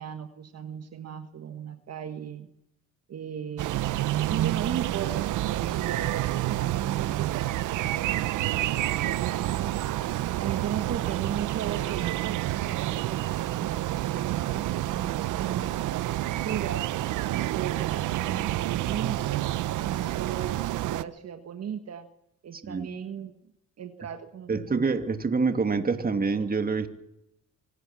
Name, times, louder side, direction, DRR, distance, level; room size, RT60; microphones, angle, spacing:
voice 1, 0.0-2.5 3.1-3.9 4.3-9.7 10.4-19.5 19.8-22.1 22.4-23.3 23.8-24.8, right 8 dB, 55° right, 7 dB, 1.5 m, -37 dB
sound 1, 3.6-21.0, right 15 dB, 80° right, 0.8 m, -29 dB
voice 2, 22.5-22.9 24.5-26.9, right 4 dB, 30° right, 7 dB, 2.5 m, -26 dB
25.0 x 18.5 x 7.3 m, 0.86 s
cardioid pair, 90°, 30 cm